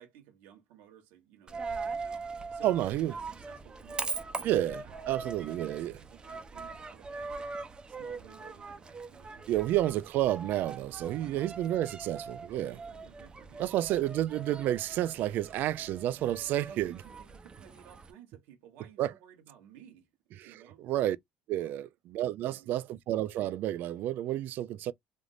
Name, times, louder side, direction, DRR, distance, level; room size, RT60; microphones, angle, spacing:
voice 1, 0.0-5.1 5.4-9.5 11.0-11.5 12.5-13.7 16.7-20.1 20.4-20.8 21.6-21.9 22.4-22.8, right 10 dB, 90° right, 1.3 m, -56 dB
Coin (dropping), 1.5-18.1, right 4 dB, 25° right, 0.7 m, -42 dB
voice 2, 2.6-3.1 4.4-5.9 9.5-12.7 13.6-17.0 19.0-19.1 20.4-21.2 21.5-24.9, right 13 dB, 65° right, 0.3 m, -30 dB
3.4 x 2.5 x 2.4 m
cardioid pair, 105°, 4 cm